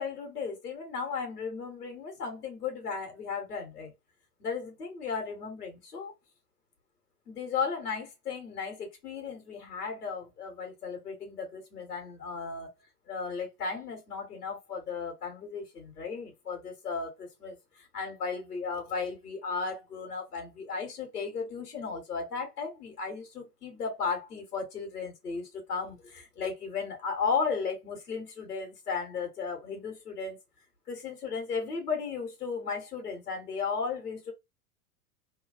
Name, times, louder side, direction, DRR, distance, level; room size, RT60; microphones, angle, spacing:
voice 1, 0.0-3.9 4.4-6.1 7.3-12.7 13.1-30.4 30.9-34.3, left 5 dB, 80° left, 1.2 m, -35 dB
3.0 x 2.3 x 2.4 m
figure-of-eight pair, 90°, 45 cm